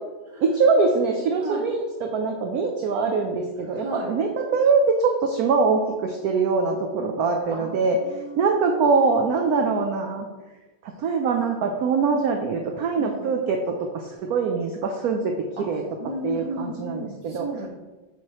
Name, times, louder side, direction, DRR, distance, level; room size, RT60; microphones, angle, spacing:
voice 1, 0.4-8.0 8.4-10.3 10.8-15.8 16.2-17.5, right 4 dB, 70° right, 3 dB, 0.9 m, -23 dB
voice 2, 3.7-4.1 7.5-8.9 12.1-12.3 13.0-13.4 15.6-15.7 16.0-17.7, right 1 dB, 20° right, -2 dB, 1.1 m, -35 dB
8.5 x 4.7 x 3.0 m, 1.2 s
omnidirectional pair, 2.0 m